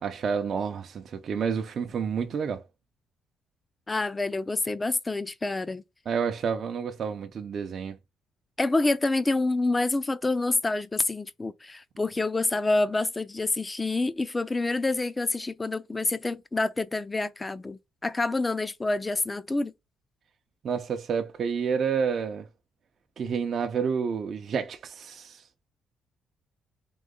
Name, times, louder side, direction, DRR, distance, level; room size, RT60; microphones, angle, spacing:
voice 1, 0.0-2.6 6.1-8.0 20.6-22.5 23.2-25.4, right 6 dB, 55° right, 0.6 m, -29 dB
voice 2, 3.9-5.8 8.6-19.7, left 2 dB, 20° left, 0.5 m, -27 dB
3.9 x 3.1 x 3.8 m
cardioid pair, 90°, 0 cm